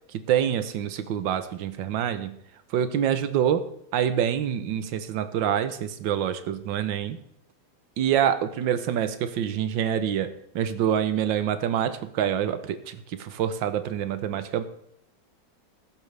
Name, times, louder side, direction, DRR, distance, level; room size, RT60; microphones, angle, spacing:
voice 1, 0.3-2.4 2.7-7.2 8.0-14.6, right 9 dB, 75° right, 11 dB, 1.6 m, -26 dB
15.0 x 12.0 x 3.4 m, 0.73 s
omnidirectional pair, 2.1 m